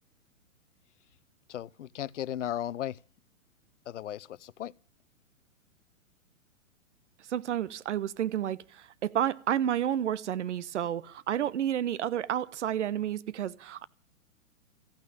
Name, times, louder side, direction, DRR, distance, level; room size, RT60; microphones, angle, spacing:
voice 1, 1.5-3.0 3.9-4.7, left 11 dB, 60° left, 0.7 m, -36 dB
voice 2, 7.3-13.8, right 10 dB, 60° right, 0.9 m, -30 dB
14.5 x 9.3 x 9.3 m
figure-of-eight pair, 115°, 40 cm